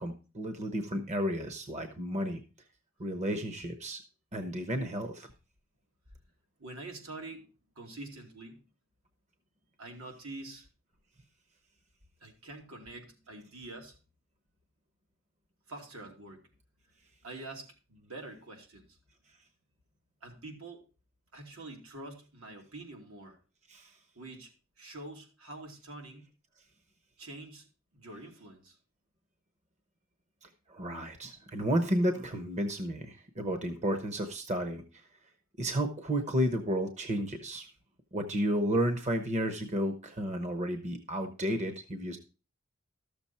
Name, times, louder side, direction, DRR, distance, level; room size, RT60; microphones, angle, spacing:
voice 1, 0.0-2.4 3.0-4.0 4.3-5.3 23.7-23.9 30.4-34.8 35.6-37.7 38.1-42.2, equal, 35° right, 7 dB, 1.0 m, -32 dB
voice 2, 6.6-7.5 7.7-8.6 9.8-10.7 12.2-14.0 15.7-16.4 17.2-19.0 20.2-20.8 21.3-23.4 24.1-24.5 24.8-26.2 27.2-27.7 27.9-28.8, right 2 dB, 80° right, 2 dB, 2.8 m, -46 dB
13.0 x 7.0 x 4.3 m, 0.33 s
head